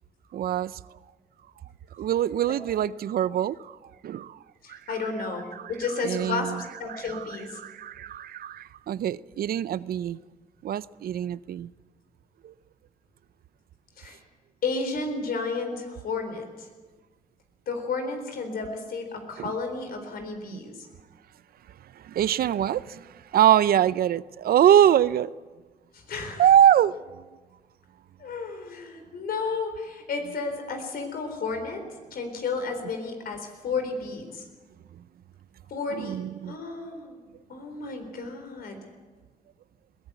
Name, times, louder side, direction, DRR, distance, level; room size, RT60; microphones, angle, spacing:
voice 1, 0.3-0.8 2.0-3.8 4.0-4.4 4.7-4.8 5.6-5.7 6.0-6.6 7.1-7.2 7.6-10.2 10.6-11.7 12.4-12.5 19.4-19.5 20.5-20.6 22.0-25.3 26.4-27.2 36.0-36.5, right 10 dB, 75° right, 0.6 m, -23 dB
voice 2, 4.6-6.5 6.8-7.6 14.0-14.2 14.6-16.7 17.7-20.9 25.9-26.5 28.2-31.8 32.1-34.5 35.7-37.2 37.5-38.8, left 4 dB, 80° left, 3.9 m, -32 dB
21.5 x 16.5 x 8.1 m
cardioid pair, 80°, 15 cm